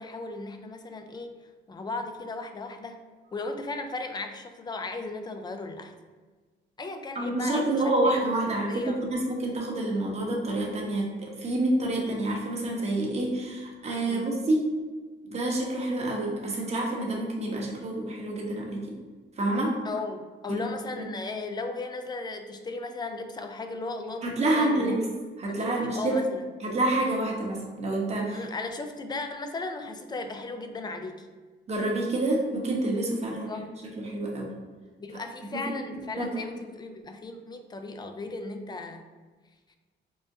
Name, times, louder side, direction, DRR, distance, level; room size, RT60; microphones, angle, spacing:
voice 1, 0.0-1.3 1.7-3.0 3.3-5.9 6.8-8.2 8.7-9.0 14.1-14.3 19.8-25.0 25.5-26.4 28.3-31.3 33.5-33.7 35.0-39.0 39.7-39.8, left 3 dB, 20° left, 6 dB, 0.4 m, -36 dB
voice 2, 7.1-14.7 15.2-19.0 19.4-19.7 20.5-20.6 21.0-21.1 24.2-25.1 25.4-26.2 26.6-28.4 31.7-33.5 34.0-34.5 35.5-35.6 35.9-36.3, right 2 dB, 35° right, -2 dB, 0.9 m, -28 dB
4.6 x 2.1 x 2.6 m, 1.4 s
cardioid pair, 90°, 20 cm